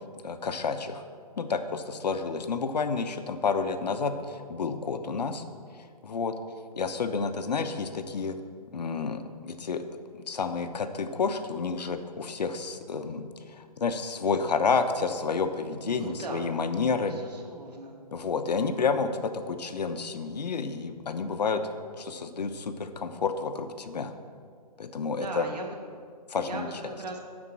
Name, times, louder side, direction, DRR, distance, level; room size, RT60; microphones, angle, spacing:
voice 1, 0.2-1.0 1.4-5.4 6.0-6.4 6.8-8.4 8.7-9.9 10.1-17.1 18.1-21.7 22.0-24.1 24.8-25.4 26.3-26.7, left 5 dB, 90° left, 8 dB, 0.9 m, -30 dB
voice 2, 15.8-16.5 17.0-18.0 25.0-25.7 26.3-27.2, right 2 dB, 75° right, 1 dB, 2.0 m, -38 dB
10.0 x 4.4 x 7.4 m, 2.1 s
hypercardioid pair, 170°, 21 cm